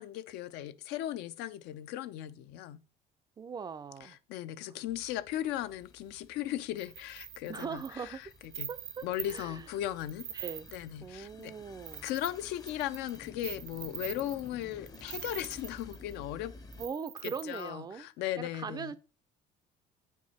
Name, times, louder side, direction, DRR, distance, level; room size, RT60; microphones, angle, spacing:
voice 1, 0.0-2.8 4.0-8.3 8.6-8.7 9.0-10.4 10.7-11.5 12.0-16.5 17.2-18.9, left 13 dB, 80° left, 0.5 m, -37 dB
voice 2, 3.4-4.2 4.7-4.8 7.5-8.2 8.7-9.7 10.3-10.7 11.0-12.1 16.8-18.1 18.4-19.0, right 6 dB, 25° right, 0.4 m, -40 dB
sound 1, 4.9-16.9, left 3 dB, 20° left, 0.6 m, -53 dB
sound 2, 6.8-9.6 10.0-11.0 11.4-11.5 11.8-16.1 16.7-17.7, right 12 dB, 80° right, 0.8 m, -43 dB
8.4 x 4.7 x 4.2 m
cardioid pair, 130°, 17 cm